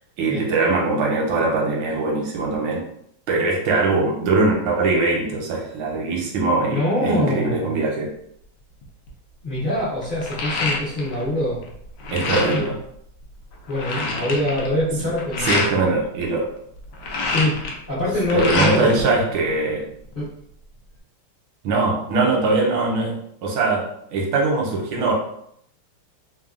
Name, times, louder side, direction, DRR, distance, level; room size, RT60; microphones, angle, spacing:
voice 1, 0.2-2.8 3.3-8.1 12.1-12.8 15.4-16.5 18.3-19.9 21.6-25.1, right 3 dB, 80° right, -1 dB, 1.5 m, -21 dB
voice 2, 6.6-7.7 9.4-11.6 12.2-12.7 13.7-15.7 17.2-17.6 17.9-19.2 20.1-20.3, left 1 dB, 50° left, -9 dB, 0.5 m, -24 dB
sound 1, 8.8-9.1 9.5-11.3 11.6-12.7 13.2-13.3 13.5-15.7 16.8-19.0 19.4-20.2, left 3 dB, 80° left, 0.9 m, -27 dB
3.4 x 2.2 x 2.4 m, 0.70 s
omnidirectional pair, 2.4 m